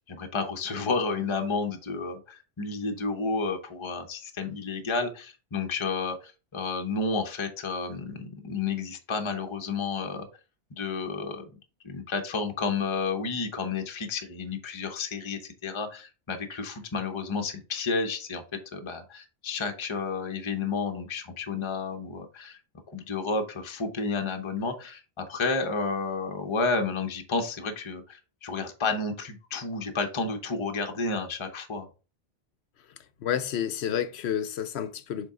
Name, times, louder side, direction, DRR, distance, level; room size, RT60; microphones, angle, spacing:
voice 1, 0.0-10.3 10.7-11.5 11.8-18.4 18.7-22.6 22.9-31.9, left 4 dB, 30° left, 0.8 m, -31 dB
voice 2, 33.2-35.3, left 9 dB, 65° left, 0.9 m, -30 dB
6.9 x 3.8 x 3.7 m
omnidirectional pair, 1.2 m